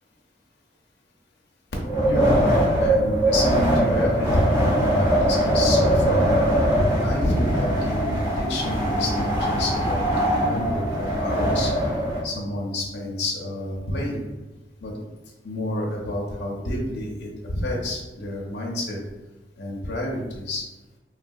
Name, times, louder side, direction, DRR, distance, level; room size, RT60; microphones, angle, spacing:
Wind, 1.8-12.2, equal, 15° right, 0.8 m, -21 dB
voice 1, 2.0-6.4 7.0-11.7 12.2-14.2 14.8-14.9 15.4-19.0 19.6-20.6, left 1 dB, 70° left, -3 dB, 0.6 m, -29 dB
3.3 x 2.3 x 2.6 m, 1.1 s
head